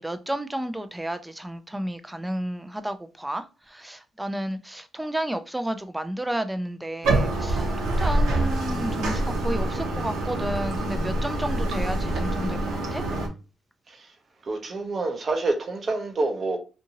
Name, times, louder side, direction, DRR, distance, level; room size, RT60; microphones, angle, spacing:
voice 1, 0.0-12.6 12.9-13.1, right 1 dB, 10° right, 0.4 m, -32 dB
Bathtub (filling or washing), 7.0-13.3, right 1 dB, 85° right, 0.9 m, -26 dB
voice 2, 14.5-16.6, right 3 dB, 45° right, 0.7 m, -27 dB
2.6 x 2.6 x 2.8 m
cardioid pair, 90°, 0 cm